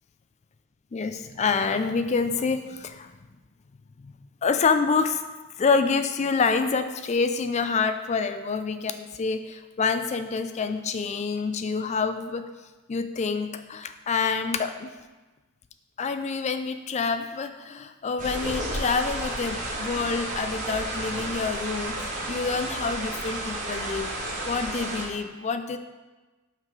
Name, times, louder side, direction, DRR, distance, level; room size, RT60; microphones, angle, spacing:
voice 1, 0.9-3.1 4.0-4.1 4.4-5.2 5.6-12.4 12.9-14.9 16.0-24.1 24.4-25.8, left 4 dB, 30° left, 9 dB, 0.3 m, -27 dB
sound 1, 18.2-25.1, right 1 dB, 35° right, 1.2 m, -32 dB
5.8 x 4.9 x 4.6 m, 1.2 s
head